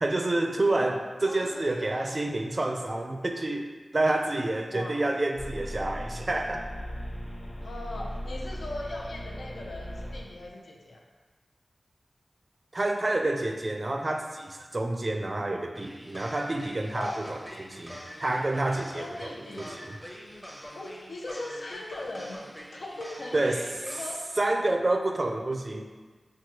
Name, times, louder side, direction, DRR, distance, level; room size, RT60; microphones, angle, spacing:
voice 1, 0.0-6.7 12.7-19.1 19.6-19.9 23.3-23.6 24.4-25.9, right 2 dB, 35° right, 4 dB, 0.4 m, -28 dB
voice 2, 0.6-2.0 4.7-5.0 7.6-11.0 16.9-17.3 18.9-19.8 20.7-22.4 22.7-24.2, left 2 dB, 80° left, -1 dB, 0.6 m, -39 dB
sound 1, 5.4-10.5, equal, 65° left, 1.1 m, -38 dB
sound 2, 15.7-24.1, equal, 5° left, 0.6 m, -44 dB
6.0 x 2.3 x 3.0 m, 1.4 s
wide cardioid pair, 75°, 0 cm